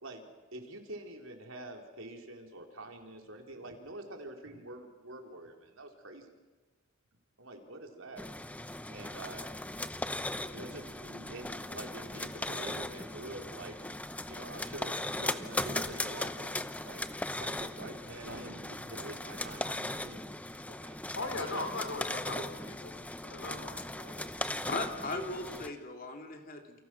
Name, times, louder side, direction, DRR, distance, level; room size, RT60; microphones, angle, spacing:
voice 1, 0.0-6.4 7.4-8.3 8.9-9.4 10.5-13.9 14.3-21.0 21.4-21.7 22.3-22.5 25.2-25.6, right 2 dB, 70° right, 3 dB, 4.0 m, -46 dB
sound 1, 8.2-25.7, left 1 dB, 5° left, 0.8 m, -38 dB
voice 2, 21.1-22.9 23.2-24.3, left 2 dB, 75° left, 5 dB, 4.8 m, -39 dB
voice 3, 24.6-26.8, left 2 dB, 40° left, 3 dB, 3.4 m, -38 dB
29.5 x 29.0 x 6.3 m, 1.2 s
head